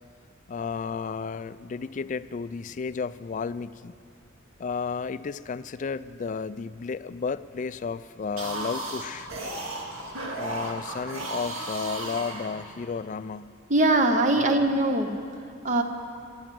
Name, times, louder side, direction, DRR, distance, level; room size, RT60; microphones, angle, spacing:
voice 1, 0.5-3.9 4.6-9.3 10.4-13.6 14.4-14.7, left 5 dB, 40° left, 16 dB, 0.3 m, -33 dB
sound 1, 8.2-13.0, right 2 dB, 80° right, 2.1 m, -35 dB
voice 2, 13.7-15.1 15.6-15.8, right 2 dB, 35° right, 6 dB, 0.9 m, -21 dB
13.5 x 12.0 x 7.6 m, 2.4 s
head